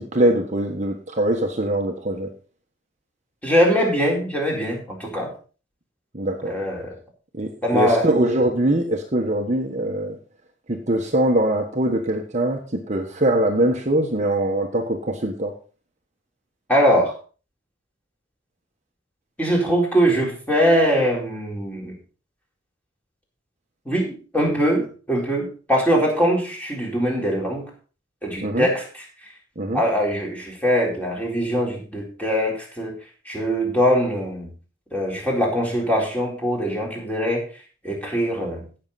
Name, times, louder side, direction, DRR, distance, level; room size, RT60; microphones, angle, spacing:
voice 1, 0.0-2.3 6.1-6.6 7.3-10.2 10.7-15.5 28.4-28.7 29.6-29.8, right 1 dB, 35° right, 3 dB, 1.4 m, -22 dB
voice 2, 3.4-5.3 6.4-6.9 7.6-8.1 16.7-17.2 19.4-22.0 23.9-27.7 28.2-29.3 29.7-33.0 33.3-34.5 34.9-37.4 37.8-38.7, equal, 10° left, -2 dB, 4.1 m, -22 dB
17.0 x 6.7 x 4.1 m, 0.36 s
head